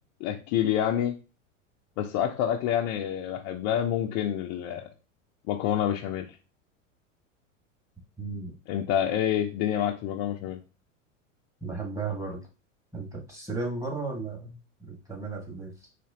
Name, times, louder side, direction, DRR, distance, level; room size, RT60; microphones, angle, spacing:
voice 1, 0.2-1.1 2.0-4.9 5.5-6.3 8.7-10.6, left 10 dB, 45° left, 1 dB, 0.6 m, -27 dB
voice 2, 8.2-8.5 11.6-12.4 12.9-14.6 14.9-15.7, right 3 dB, 10° right, -1 dB, 1.7 m, -34 dB
4.2 x 3.1 x 2.8 m, 0.31 s
hypercardioid pair, 95°, 39 cm